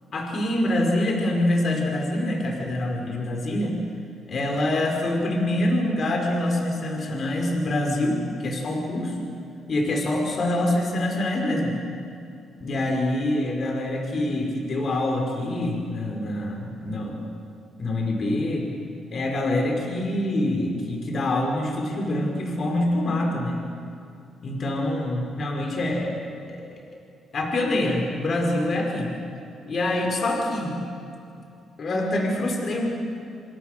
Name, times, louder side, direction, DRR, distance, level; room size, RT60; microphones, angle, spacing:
voice 1, 0.1-3.8 4.3-9.3 9.7-11.7 12.6-17.2 17.8-18.7 19.1-23.6 24.4-26.2 26.5-26.7 27.3-29.1 29.7-30.7 31.4-31.5 31.8-32.9, left 1 dB, 50° left, 1 dB, 5.5 m, -25 dB
28.0 x 26.5 x 6.9 m, 2.6 s
cardioid pair, 90°, 0 cm